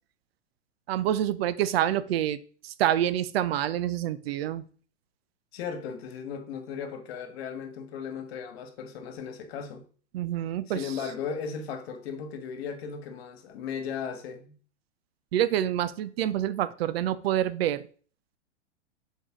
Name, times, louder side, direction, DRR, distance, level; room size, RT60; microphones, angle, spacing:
voice 1, 0.9-4.6 10.1-10.8 15.3-17.8, right 11 dB, 55° right, 0.6 m, -27 dB
voice 2, 5.5-9.8 10.7-14.6, left 6 dB, 55° left, 1.5 m, -36 dB
6.9 x 4.6 x 3.7 m
hypercardioid pair, 125°, 36 cm